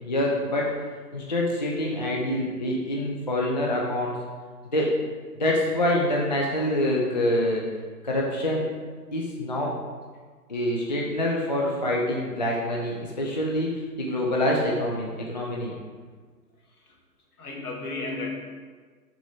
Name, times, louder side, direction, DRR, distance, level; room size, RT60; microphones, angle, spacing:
voice 1, 0.0-0.7 1.1-4.2 4.7-4.9 5.4-7.6 8.0-8.7 9.1-9.8 10.5-15.7, left 1 dB, 30° left, -3 dB, 0.4 m, -26 dB
voice 2, 17.4-18.3, left 3 dB, 60° left, -1 dB, 1.6 m, -34 dB
6.3 x 4.1 x 4.2 m, 1.5 s
figure-of-eight pair, 125°, 50 cm